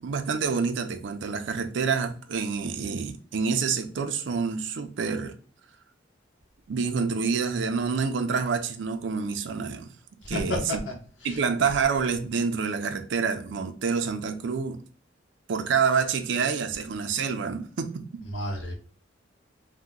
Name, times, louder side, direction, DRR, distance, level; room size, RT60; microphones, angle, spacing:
voice 1, 0.0-5.3 6.7-9.9 10.3-10.6 11.2-14.8 15.5-18.1, right 5 dB, 70° right, 0.4 m, -27 dB
voice 2, 10.2-10.9 11.2-11.4 18.3-18.7, left 1 dB, 80° left, 1.0 m, -31 dB
2.8 x 2.1 x 3.6 m
head